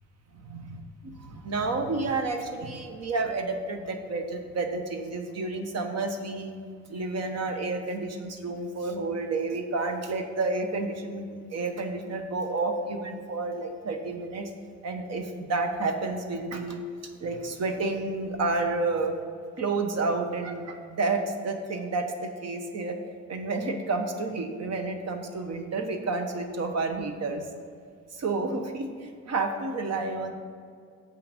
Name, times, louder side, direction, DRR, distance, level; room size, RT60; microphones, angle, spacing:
voice 1, 1.0-6.5 6.9-14.5 14.8-16.8 17.2-19.1 19.6-23.0 23.3-27.4 28.1-30.3, right 3 dB, 55° right, 5 dB, 1.1 m, -30 dB
7.6 x 5.8 x 5.3 m, 2.2 s
cardioid pair, 90°, 30 cm